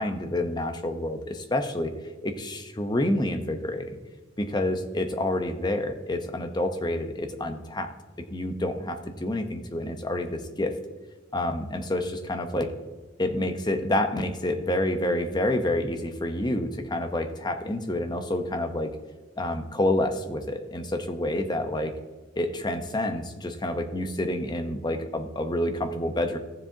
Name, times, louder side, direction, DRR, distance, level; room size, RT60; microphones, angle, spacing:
voice 1, 0.0-1.9 2.2-3.9 4.4-7.9 8.3-10.7 11.3-12.7 13.2-18.9 19.4-21.9 22.4-26.4, left 1 dB, 20° left, 6 dB, 0.7 m, -28 dB
15.0 x 7.3 x 2.7 m, 1.3 s
head